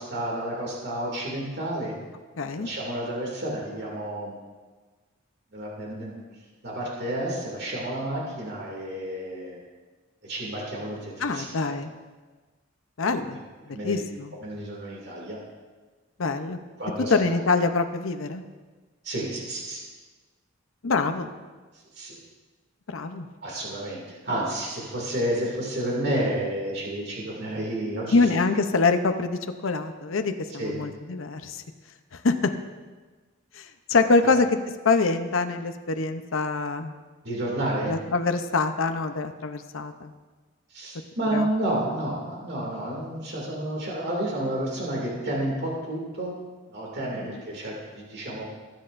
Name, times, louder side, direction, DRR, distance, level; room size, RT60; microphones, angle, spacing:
voice 1, 0.0-2.0 2.6-4.4 5.5-6.2 6.6-9.6 10.2-11.7 13.2-13.3 13.7-14.0 14.4-15.4 16.8-17.3 19.0-19.8 22.0-22.2 23.4-28.2 30.6-30.8 34.2-34.3 37.2-37.9 40.7-46.4 46.7-48.5, right 1 dB, 55° right, -3 dB, 2.5 m, -30 dB
voice 2, 2.4-2.7 11.2-11.9 13.0-13.4 13.7-14.3 16.2-16.6 17.1-18.4 20.8-21.3 22.9-23.3 28.1-31.6 32.2-32.5 33.6-34.5 34.8-36.9 37.9-40.1 41.3-41.5 47.2-47.4, left 3 dB, 75° left, 8 dB, 0.7 m, -25 dB
19.0 x 8.8 x 2.6 m, 1.3 s
head